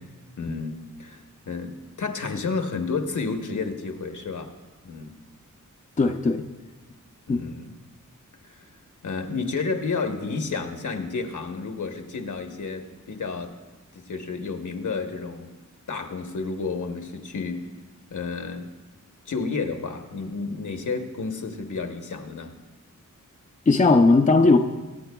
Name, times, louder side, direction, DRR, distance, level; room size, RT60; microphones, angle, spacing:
voice 1, 0.4-4.5 4.8-5.1 7.3-7.7 8.4-8.7 9.0-13.5 13.9-15.5 15.9-17.6 18.1-18.7 19.3-22.5, left 4 dB, 70° left, 5 dB, 1.0 m, -31 dB
voice 2, 6.0-6.5 7.3-7.4 23.7-24.6, left 3 dB, 25° left, 5 dB, 0.5 m, -17 dB
23.5 x 8.7 x 2.3 m, 1.2 s
wide cardioid pair, 115°, 31 cm